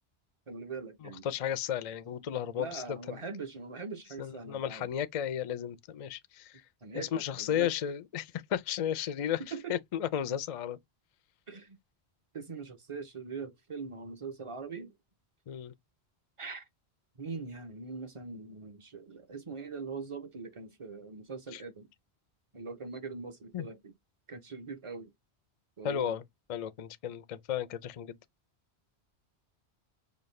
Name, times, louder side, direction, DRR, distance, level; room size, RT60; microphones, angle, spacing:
voice 1, 0.5-1.3 2.6-4.9 6.8-7.7 9.5-9.8 11.5-11.8 12.3-14.9 16.4-16.7 17.2-21.9 22.5-23.9 24.3-25.1 25.8-26.2, right 4 dB, 35° right, 0.6 m, -42 dB
voice 2, 1.0-3.2 4.2-6.5 6.9-9.4 9.7-10.8 15.5-15.7 21.5-21.6 23.5-23.7 25.8-26.2 26.5-28.2, left 10 dB, 55° left, 0.4 m, -34 dB
5.2 x 2.3 x 3.1 m
omnidirectional pair, 1.1 m